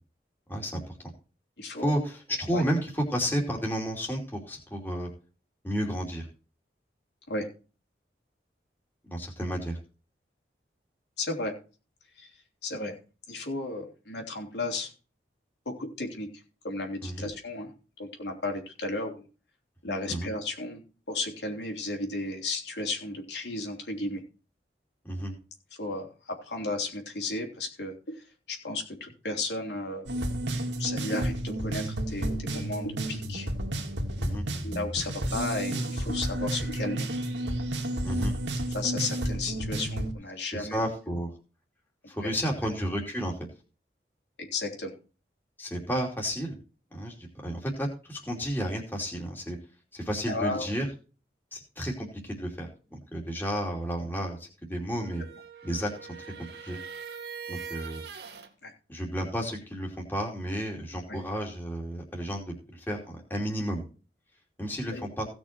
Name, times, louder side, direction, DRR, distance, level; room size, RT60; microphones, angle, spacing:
voice 1, 0.5-0.9 1.8-5.1 5.6-6.3 9.0-9.8 17.0-17.3 20.1-20.3 25.0-25.3 34.2-34.4 38.0-38.3 40.5-41.3 42.1-43.3 45.6-46.6 46.9-47.1 47.4-49.6 49.9-50.9 51.5-55.2 55.6-55.9 56.2-56.3 56.6-56.8 57.5-58.0 58.9-63.8 64.6-65.3, equal, 10° left, -1 dB, 2.9 m, -32 dB
voice 2, 1.6-2.0 2.5-2.6 7.3-7.5 11.2-11.5 12.2-12.3 12.6-12.9 13.3-14.9 15.6-16.3 16.6-17.7 18.0-19.2 19.8-20.8 21.1-24.2 25.7-30.1 30.8-33.5 34.6-37.1 38.7-40.8 44.4-44.9 50.2-50.8 58.6-58.7 61.1-61.2 64.9-65.0, left 2 dB, 80° left, 2 dB, 3.4 m, -34 dB
sound 1, 30.1-40.1, right 1 dB, 90° right, 2.2 m, -31 dB
sound 2, 54.9-58.5, right 6 dB, 75° right, 2.2 m, -42 dB
17.0 x 6.3 x 4.4 m, 0.35 s
head